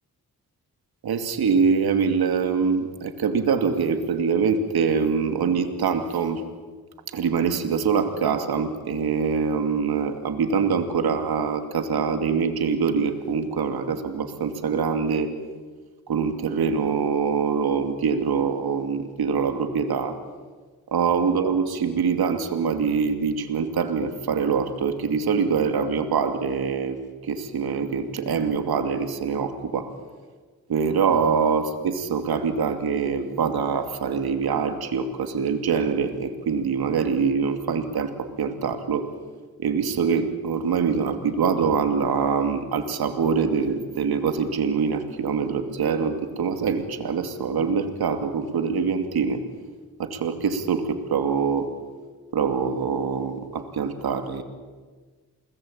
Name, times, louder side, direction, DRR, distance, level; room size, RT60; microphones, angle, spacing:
voice 1, 1.0-6.4 7.1-15.3 16.1-20.2 20.9-27.0 27.2-29.9 30.7-39.1 39.6-49.4 50.0-51.7 52.3-54.4, right 6 dB, 90° right, 7 dB, 2.6 m, -24 dB
29.5 x 20.0 x 8.9 m, 1.4 s
cardioid pair, 45°, 36 cm